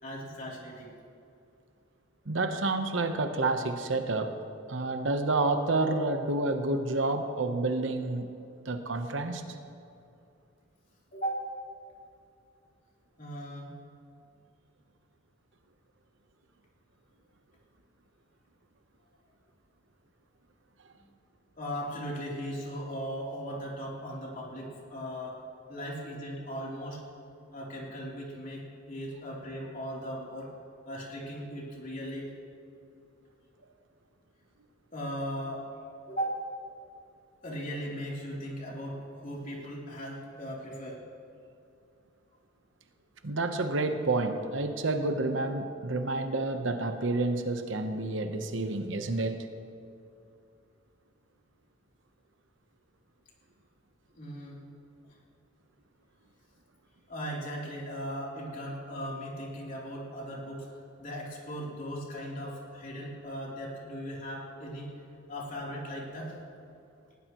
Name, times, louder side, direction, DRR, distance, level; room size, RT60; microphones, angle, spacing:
voice 1, 0.0-0.9 11.1-11.4 13.2-13.7 20.9-21.1 21.6-25.4 25.7-27.0 27.5-30.5 30.9-32.3 34.9-35.6 36.1-36.4 37.4-41.0 54.1-54.6 57.1-60.7 61.0-64.9 65.3-66.3, equal, 45° left, -4 dB, 3.3 m, -38 dB
voice 2, 2.3-4.3 4.7-8.3 8.7-9.4 43.2-49.4, right 2 dB, 70° right, 7 dB, 1.0 m, -29 dB
20.0 x 17.0 x 3.1 m, 2.6 s
head